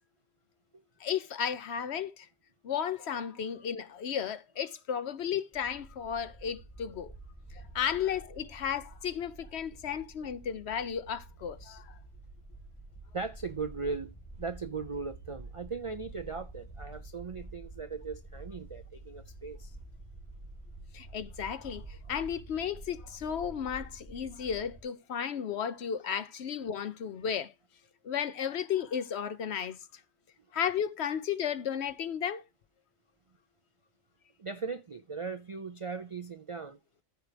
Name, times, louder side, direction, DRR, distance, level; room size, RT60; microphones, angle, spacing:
voice 1, 1.0-2.3 2.6-7.1 7.5-12.0 20.9-27.5 28.0-29.8 30.5-32.4, left 8 dB, 65° left, 1.0 m, -34 dB
sound 1, 5.5-24.8, right 2 dB, 5° right, 3.3 m, -49 dB
voice 2, 13.1-19.7 34.4-36.8, right 4 dB, 50° right, 0.4 m, -38 dB
14.0 x 4.7 x 5.0 m
omnidirectional pair, 1.3 m